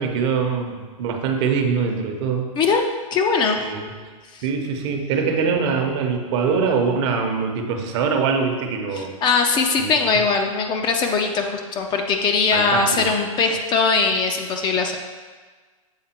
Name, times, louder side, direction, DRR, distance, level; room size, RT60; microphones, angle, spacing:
voice 1, 0.0-2.5 3.6-3.9 4.4-9.2 9.8-10.2 12.5-13.1, right 5 dB, 50° right, 4 dB, 0.9 m, -23 dB
voice 2, 2.6-3.6 4.3-4.4 8.9-15.0, left 4 dB, 25° left, 4 dB, 0.5 m, -21 dB
7.4 x 3.6 x 4.3 m, 1.4 s
hypercardioid pair, 130°, 19 cm